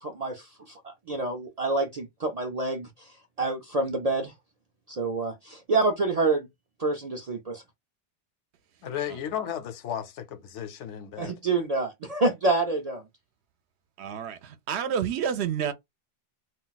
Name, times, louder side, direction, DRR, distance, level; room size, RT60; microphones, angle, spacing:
voice 1, 0.0-2.9 3.4-4.3 4.9-6.5 6.8-7.6 11.2-13.0, right 3 dB, 55° right, 0.4 m, -27 dB
voice 2, 8.8-11.4, left 9 dB, 85° left, 0.9 m, -34 dB
voice 3, 14.0-15.7, right 8 dB, 70° right, 0.8 m, -29 dB
2.3 x 2.2 x 3.8 m
omnidirectional pair, 1.2 m